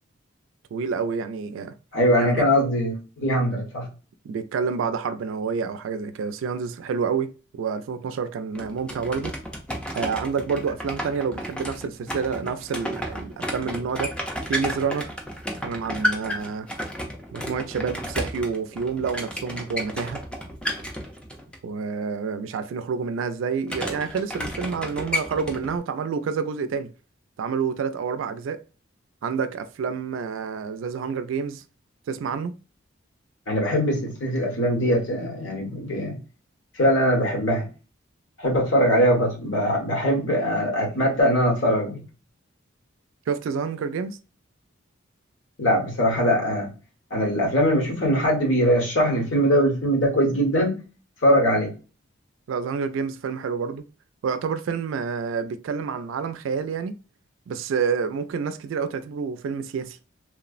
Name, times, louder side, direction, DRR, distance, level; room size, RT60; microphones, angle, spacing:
voice 1, 0.7-1.7 2.2-2.5 4.2-9.3 9.9-14.1 14.5-15.1 15.6-16.7 17.3-20.2 21.6-26.9 27.4-28.6 29.2-31.6 32.1-32.5 43.3-44.2 52.5-53.8 54.2-57.0 57.5-60.0, right 5 dB, 80° right, 0.3 m, -28 dB
voice 2, 1.9-3.9 33.5-36.2 36.7-37.7 38.4-42.0 45.6-46.7 47.1-50.7 51.2-51.7, equal, 75° left, 1.1 m, -21 dB
sound 1, 8.5-21.6 23.7-25.8, equal, 5° left, 0.4 m, -32 dB
3.1 x 2.0 x 2.3 m
head